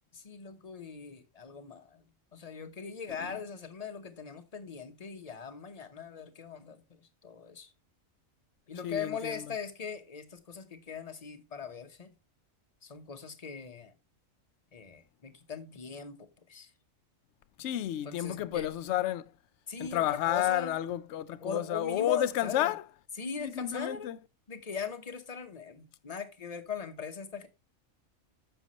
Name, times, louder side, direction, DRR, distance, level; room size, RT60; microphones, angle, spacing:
voice 1, 0.1-7.7 8.7-12.2 12.8-13.9 14.7-16.7 18.0-19.0 19.7-20.7 21.4-22.7 23.2-24.1 24.5-27.5, left 6 dB, 35° left, 0.9 m, -40 dB
voice 2, 8.8-9.5 17.6-19.2 19.8-22.8 23.4-24.2, left 12 dB, 65° left, 0.8 m, -31 dB
9.6 x 6.8 x 3.0 m
omnidirectional pair, 1.4 m